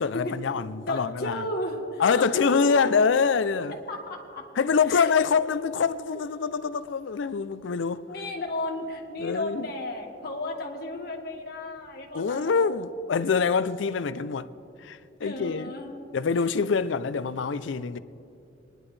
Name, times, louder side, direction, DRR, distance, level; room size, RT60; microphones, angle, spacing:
voice 1, 0.0-1.4 2.0-3.8 4.6-8.0 9.2-9.6 12.1-14.5 14.8-15.7 16.1-18.0, left 5 dB, 80° left, 0.5 m, -25 dB
voice 2, 0.9-3.0 3.9-4.5 4.9-5.1 6.1-6.2 8.1-12.8 15.2-16.0, left 1 dB, 55° left, 1.7 m, -34 dB
24.0 x 10.5 x 3.3 m
head